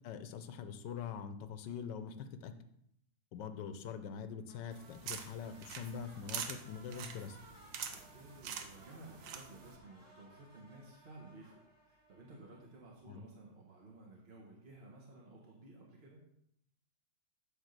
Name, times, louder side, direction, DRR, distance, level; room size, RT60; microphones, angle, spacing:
voice 1, 0.0-2.5 3.3-7.4 13.1-13.2, left 7 dB, 75° left, 9 dB, 1.3 m, -44 dB
sound 1, 4.4-12.9, equal, 10° right, 2.6 m, -62 dB
sound 2, 4.7-9.8, right 7 dB, 85° right, 1.5 m, -46 dB
voice 2, 7.8-16.2, right 2 dB, 35° right, -3 dB, 1.4 m, -55 dB
9.8 x 3.6 x 6.7 m, 0.74 s
omnidirectional pair, 2.0 m